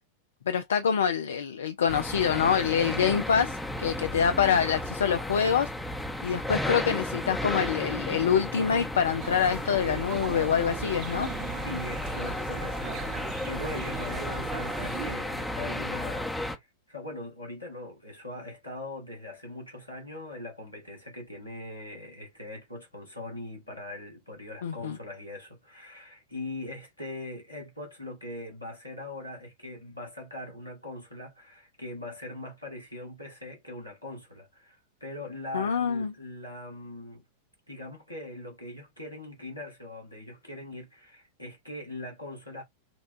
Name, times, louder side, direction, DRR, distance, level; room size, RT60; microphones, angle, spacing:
voice 1, 0.5-5.7 6.2-11.3 24.6-25.0 35.5-36.1, left 7 dB, 65° left, 0.4 m, -26 dB
sound 1, 1.9-16.6, left 1 dB, 5° left, 0.7 m, -34 dB
sound 2, 9.2-15.2, right 6 dB, 40° right, 0.5 m, -38 dB
voice 2, 11.6-37.2 37.7-42.6, left 1 dB, 85° left, 1.8 m, -41 dB
5.8 x 2.2 x 2.5 m
figure-of-eight pair, 90°, 0 cm